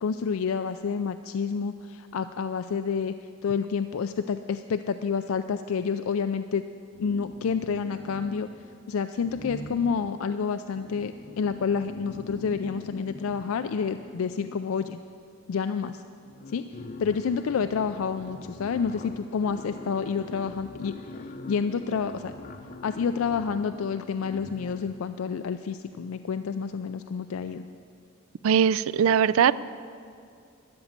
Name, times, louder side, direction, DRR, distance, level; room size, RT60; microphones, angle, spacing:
voice 1, 0.0-3.1 3.4-6.6 7.0-8.5 8.9-15.0 15.5-16.0 16.5-16.6 17.0-20.9 21.5-22.3 22.8-27.7, left 6 dB, 80° left, 9 dB, 0.4 m, -29 dB
sound 1, 6.9-8.7 9.2-14.9 15.8-15.9 16.2-25.0, left 2 dB, 40° left, 0.6 m, -43 dB
voice 2, 28.4-29.6, right 8 dB, 80° right, 18 dB, 0.3 m, -20 dB
13.0 x 9.7 x 7.3 m, 2.4 s
head